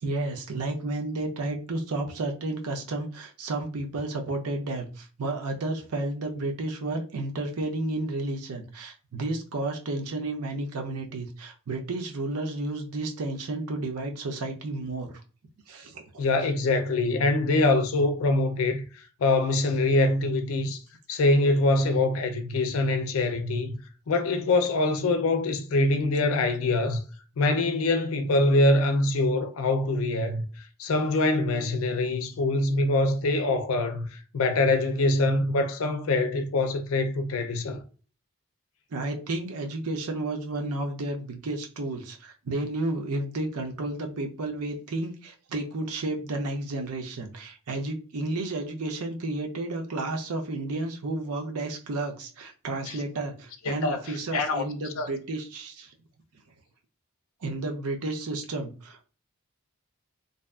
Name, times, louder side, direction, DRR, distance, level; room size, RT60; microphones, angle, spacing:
voice 1, 0.0-15.1 15.7-16.2 20.6-20.7 38.9-55.9 57.4-59.1, right 2 dB, 90° right, 0.6 m, -32 dB
voice 2, 16.2-18.8 19.2-20.8 21.1-23.8 24.1-27.0 27.4-30.4 30.8-37.8 52.9-53.0 53.6-54.6 55.0-55.1, left 2 dB, 70° left, 0.4 m, -24 dB
2.6 x 2.3 x 2.3 m
head